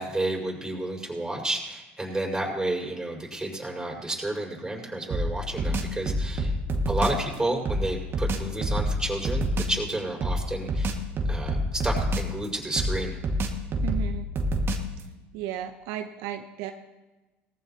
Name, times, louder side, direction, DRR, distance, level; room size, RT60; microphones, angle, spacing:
voice 1, 0.0-6.5 6.8-10.9 11.3-13.2, right 1 dB, 10° right, -2 dB, 5.6 m, -31 dB
sound 1, 5.1-7.2 7.7-9.8 10.2-12.5 12.8-15.0, equal, 40° right, 1.9 m, -27 dB
voice 2, 13.8-14.3 15.3-16.7, right 11 dB, 70° right, 6 dB, 0.8 m, -34 dB
19.0 x 14.5 x 2.9 m, 1.1 s
hypercardioid pair, 80°, 6 cm